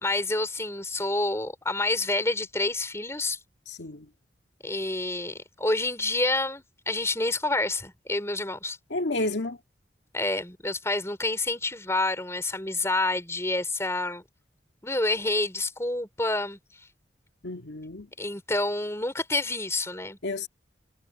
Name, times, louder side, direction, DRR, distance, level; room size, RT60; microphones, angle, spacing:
voice 1, 0.0-3.4 4.6-8.8 10.1-14.2 14.8-16.6 18.2-20.2, left 2 dB, 15° left, 4.6 m, -28 dB
voice 2, 3.7-4.1 8.9-9.6 17.4-18.1 20.2-20.5, left 2 dB, 90° left, 1.9 m, -31 dB
head